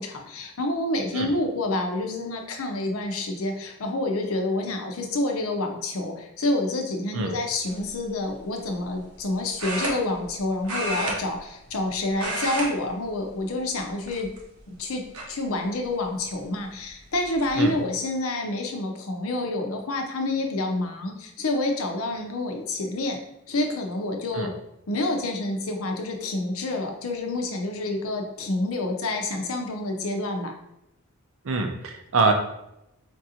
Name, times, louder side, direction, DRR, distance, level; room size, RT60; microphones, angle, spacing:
voice 1, 0.0-14.3 14.7-15.0 15.3-23.2 23.5-24.5 24.9-30.5, left 2 dB, 80° left, 3 dB, 0.6 m, -28 dB
sound 1, 7.7-7.9 9.6-10.4 10.6-11.9 12.1-12.7 13.0-13.3 14.0-14.6 15.1-15.2 16.7-16.8 17.1-17.5, right 1 dB, 90° right, 0.8 m, -31 dB
voice 2, 31.4-32.3, right 3 dB, 70° right, 5 dB, 0.5 m, -24 dB
4.5 x 2.5 x 2.8 m, 0.85 s
head